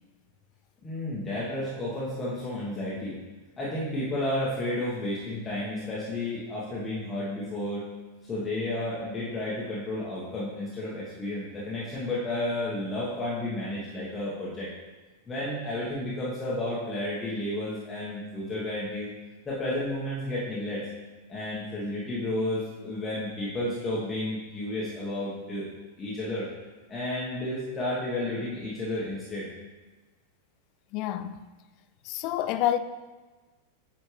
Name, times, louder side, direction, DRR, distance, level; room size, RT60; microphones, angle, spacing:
voice 1, 0.8-3.1 3.6-7.8 8.3-14.7 15.3-19.1 19.4-20.9 21.3-25.7 26.0-26.5 26.9-29.5, left 1 dB, 15° left, 1.4 m, -32 dB
voice 2, 30.9-31.4 32.0-32.8, left 12 dB, 40° left, 0.3 m, -28 dB
9.2 x 4.3 x 3.3 m
figure-of-eight pair, 90°, 0 cm